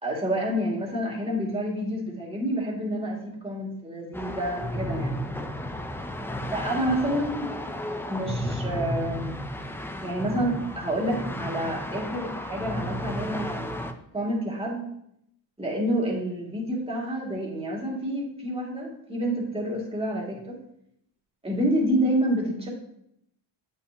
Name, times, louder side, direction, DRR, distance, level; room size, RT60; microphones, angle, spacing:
voice 1, 0.0-5.2 6.5-7.7 8.1-9.4 10.0-13.7 14.1-14.9 15.6-20.6 21.4-22.7, right 1 dB, 10° right, -3 dB, 2.3 m, -28 dB
sound 1, 4.1-13.9, equal, 5° left, 0.5 m, -33 dB
8.5 x 5.5 x 2.9 m, 0.75 s
cardioid pair, 105°, 47 cm